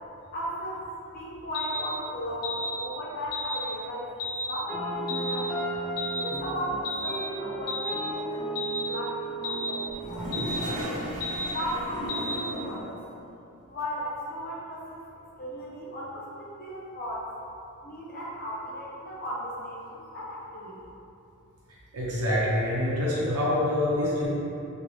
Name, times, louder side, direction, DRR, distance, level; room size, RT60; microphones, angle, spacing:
voice 1, 0.3-0.8 1.1-4.1 4.4-5.5 6.1-11.0 11.5-12.9 13.7-15.0 15.4-17.3 17.8-20.7, equal, 40° left, -6 dB, 0.6 m, -36 dB
sound 1, 1.5-1.8 2.4-2.7 3.3-3.6 4.2-4.5 5.1-5.4 6.0-6.3 6.8-7.1 7.7-8.0 8.6-8.8 9.4-9.7 10.3-10.6 11.2-11.5 12.1-12.4, left 1 dB, 85° left, 0.7 m, -32 dB
sound 2, 4.7-12.7, right 2 dB, ahead, 0.9 m, -35 dB
Toilet flush, 9.9-13.0, equal, 35° right, 0.5 m, -35 dB
voice 2, 21.9-24.3, left 1 dB, 85° right, -7 dB, 0.7 m, -26 dB
3.0 x 2.5 x 3.0 m, 2.8 s
head